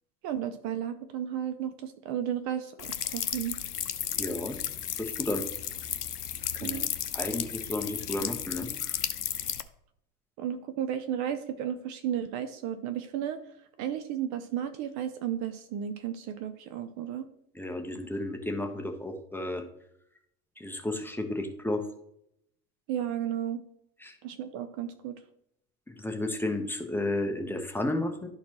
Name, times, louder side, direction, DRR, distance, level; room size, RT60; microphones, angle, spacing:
voice 1, 0.2-3.6 6.6-6.8 10.4-13.4 13.8-17.3 22.9-23.6 24.2-25.1, right 9 dB, 40° right, 10 dB, 0.6 m, -33 dB
sound 1, 2.8-9.6, left 10 dB, 80° left, 0.6 m, -34 dB
voice 2, 4.2-4.6 5.0-5.5 6.6-6.8 7.1-9.0 17.5-19.6 20.6-21.8 24.0-24.2 25.9-28.3, left 1 dB, 5° left, 4 dB, 0.8 m, -32 dB
12.0 x 4.3 x 2.9 m, 0.75 s
figure-of-eight pair, 80°, 46 cm